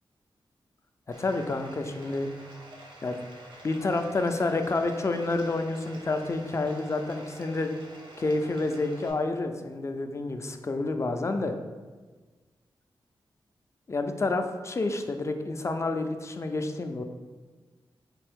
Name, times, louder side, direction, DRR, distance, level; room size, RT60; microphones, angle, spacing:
Bathtub (filling or washing), 1.1-9.1, right 1 dB, 65° right, 0.7 m, -48 dB
voice 1, 1.2-2.3 3.0-3.2 3.6-7.7 8.2-11.6 13.9-17.0, left 2 dB, 35° left, 6 dB, 0.3 m, -29 dB
3.6 x 2.5 x 3.5 m, 1.4 s
cardioid pair, 70°, 9 cm